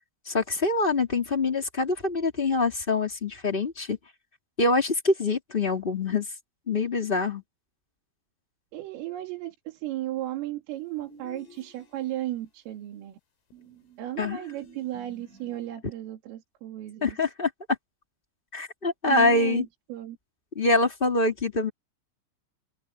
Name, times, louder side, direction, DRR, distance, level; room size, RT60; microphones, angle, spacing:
voice 1, 0.2-4.0 4.6-6.3 6.7-7.4 14.2-14.4 17.0-17.5 18.5-19.6 20.5-21.7, left 3 dB, 25° left, 1.2 m, -25 dB
voice 2, 8.7-13.2 14.0-17.2 19.1-20.2, right 14 dB, 80° right, 5.2 m, -35 dB
sound 1, 11.0-12.3 13.5-15.7, left 1 dB, 80° left, 9.3 m, -50 dB
open air
omnidirectional pair, 5.8 m